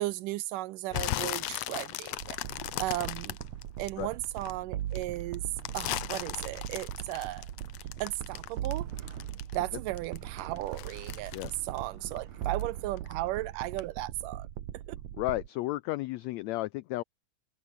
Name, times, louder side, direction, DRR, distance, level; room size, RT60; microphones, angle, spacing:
voice 1, 0.0-2.4 2.8-3.4 3.8-5.4 5.7-7.5 8.0-8.9 9.5-11.3 11.6-14.5 14.9-15.0, right 16 dB, 85° right, 2.4 m, -35 dB
sound 1, 0.9-4.5 4.9-9.7 10.0-12.7 13.0-13.4 13.8-13.9, left 14 dB, 70° left, 1.7 m, -37 dB
sound 2, 2.2-15.5, right 12 dB, 65° right, 2.5 m, -40 dB
sound 3, 3.4-13.0, right 7 dB, 45° right, 2.5 m, -53 dB
voice 2, 15.1-17.0, left 18 dB, 90° left, 1.5 m, -33 dB
open air
omnidirectional pair, 3.7 m